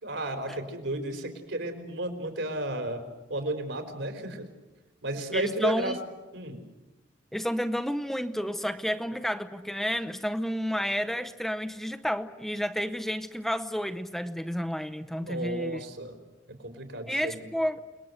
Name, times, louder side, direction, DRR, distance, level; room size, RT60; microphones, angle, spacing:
voice 1, 0.0-3.0 3.3-4.5 5.0-6.0 6.3-6.6 15.1-16.2 16.6-17.5, right 1 dB, 75° right, 6 dB, 4.3 m, -33 dB
voice 2, 5.3-6.0 7.3-15.8 17.1-17.8, equal, ahead, 9 dB, 0.8 m, -31 dB
29.5 x 20.0 x 7.9 m, 1.1 s
head